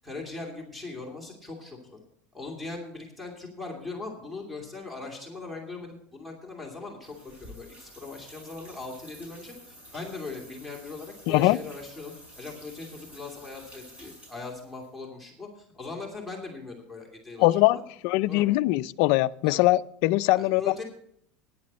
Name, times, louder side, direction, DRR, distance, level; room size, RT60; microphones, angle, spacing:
voice 1, 0.0-2.0 2.3-7.1 7.4-17.8 18.3-18.5 19.4-19.6 20.3-20.8, left 3 dB, ahead, -2 dB, 2.7 m, -40 dB
sound 1, 7.0-14.9, equal, 30° right, 5.2 m, -50 dB
voice 2, 11.3-11.6 17.4-17.8 18.0-20.7, left 18 dB, 65° left, 13 dB, 0.4 m, -22 dB
14.0 x 10.5 x 4.2 m, 0.67 s
supercardioid pair, 135°, 4 cm